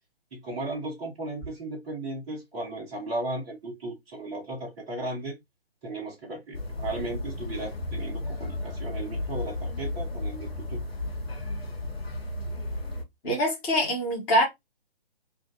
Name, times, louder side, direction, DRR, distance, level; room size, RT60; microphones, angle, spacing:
voice 1, 0.3-5.4 5.8-10.8, right 2 dB, 5° right, 0.4 m, -36 dB
sound 1, 6.5-13.0, left 2 dB, 70° left, 1.0 m, -33 dB
voice 2, 13.2-14.4, equal, 15° left, 1.0 m, -24 dB
2.6 x 2.4 x 3.7 m
figure-of-eight pair, 135°, 31 cm